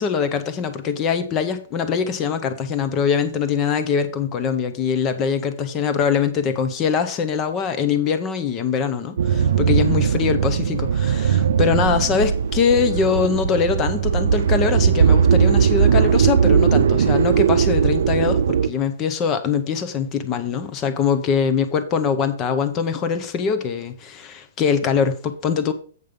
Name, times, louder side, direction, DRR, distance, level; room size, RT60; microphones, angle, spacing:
voice 1, 0.0-25.7, left 6 dB, 15° left, 0.7 m, -22 dB
sound 1, 9.2-18.7, right 7 dB, 70° right, 0.5 m, -18 dB
8.0 x 5.3 x 5.2 m
hypercardioid pair, 175°, 0 cm